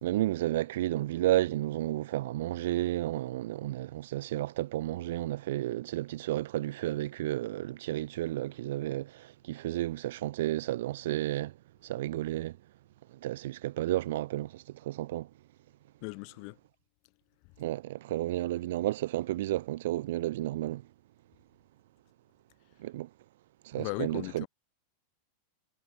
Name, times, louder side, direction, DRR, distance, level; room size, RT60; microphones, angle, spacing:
voice 1, 0.0-11.6 11.8-12.6 13.1-15.3 17.6-20.9 22.8-23.1 23.6-24.5, right 15 dB, 70° right, 0.4 m, -32 dB
voice 2, 16.0-16.6 17.4-17.6 23.8-24.5, left 40 dB or more, 55° left, 3.5 m, -38 dB
hypercardioid pair, 100°, 0 cm